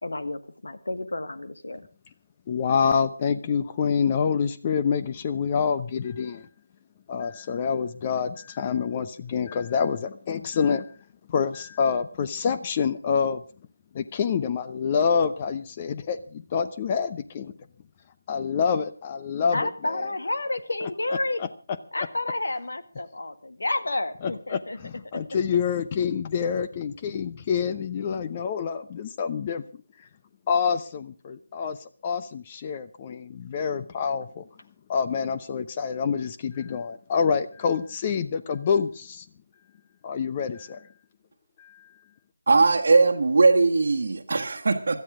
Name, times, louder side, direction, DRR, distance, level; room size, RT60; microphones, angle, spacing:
voice 1, 0.0-1.8 19.5-21.4 21.9-24.8 25.1-25.2, left 2 dB, 70° left, 1.9 m, -30 dB
voice 2, 2.5-6.5 7.1-10.9 11.3-13.4 13.9-17.5 18.3-19.7 24.2-29.6 30.5-31.8 32.0-34.4 34.9-39.3 40.0-40.8 41.6-41.9, left 6 dB, 25° left, 0.8 m, -27 dB
voice 3, 42.5-45.0, right 3 dB, 55° right, 1.4 m, -20 dB
17.0 x 13.0 x 5.0 m
figure-of-eight pair, 160°, 0 cm